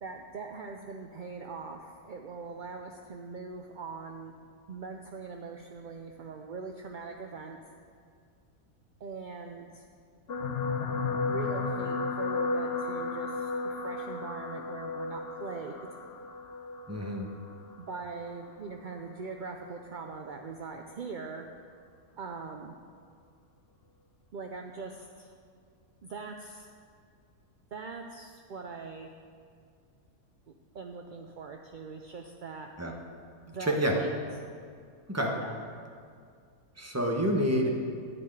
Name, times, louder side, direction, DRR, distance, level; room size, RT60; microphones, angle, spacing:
voice 1, 0.0-4.3 4.7-7.6 9.0-9.9 11.3-16.0 17.8-21.5 22.2-22.7 24.3-25.3 26.0-26.7 27.7-29.1 30.7-32.7 33.5-34.2 35.3-35.5, right 4 dB, 50° right, 3 dB, 0.6 m, -41 dB
sound 1, 10.3-18.7 19.5-19.7 20.0-20.1, left 3 dB, 50° left, 0.9 m, -34 dB
voice 2, 16.9-17.3 32.8-32.9 33.6-34.0 35.1-35.4 36.8-37.7, equal, 10° right, 0 dB, 1.2 m, -28 dB
13.5 x 4.7 x 9.0 m, 2.2 s
omnidirectional pair, 1.5 m